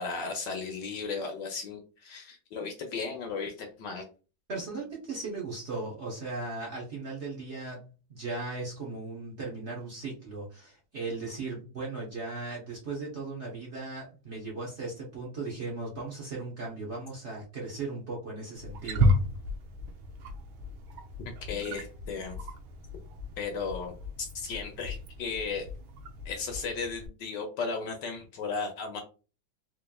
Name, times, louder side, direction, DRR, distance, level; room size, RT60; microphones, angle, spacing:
voice 1, 0.0-4.1 21.4-22.4 23.4-23.9 24.3-25.7 26.2-29.0, left 4 dB, 70° left, 4 dB, 1.2 m, -35 dB
voice 2, 4.5-7.8 8.1-19.2, right 3 dB, 40° right, -3 dB, 1.1 m, -37 dB
Wild animals, 18.6-27.1, equal, 90° right, 1.5 m, -33 dB
4.2 x 3.2 x 2.3 m, 0.34 s
omnidirectional pair, 2.2 m